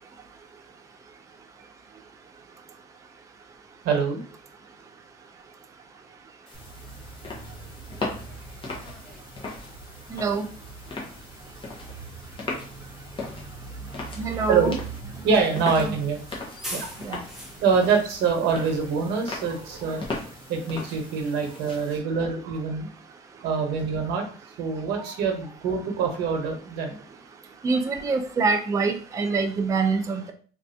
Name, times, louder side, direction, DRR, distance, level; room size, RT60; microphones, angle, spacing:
voice 1, 3.8-4.2 14.5-14.8 15.2-16.2 16.7-16.9 17.6-22.9 23.4-24.2 24.6-27.0, right 5 dB, 80° right, 3 dB, 0.9 m, -25 dB
sound 1, 6.5-22.0, left 3 dB, 30° left, 0.9 m, -39 dB
Bus, 6.5-19.8, right 3 dB, ahead, 1.1 m, -42 dB
voice 2, 10.1-10.4 14.2-14.7 15.8-15.9 17.0-17.2 27.6-30.3, right 4 dB, 20° right, 5 dB, 0.4 m, -25 dB
3.1 x 2.6 x 2.6 m, 0.41 s
cardioid pair, 110°, 17 cm